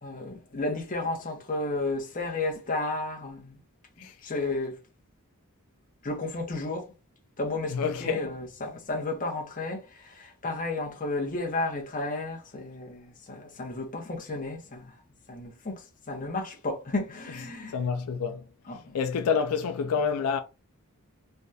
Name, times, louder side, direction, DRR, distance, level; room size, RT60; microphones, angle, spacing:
voice 1, 0.0-3.6 4.0-4.8 6.0-6.9 7.4-15.0 15.3-17.8 18.7-18.9, left 2 dB, 35° left, 0.9 m, -33 dB
voice 2, 7.7-8.3 17.7-18.4 18.9-20.4, left 6 dB, 85° left, 0.4 m, -28 dB
3.4 x 2.3 x 2.6 m
head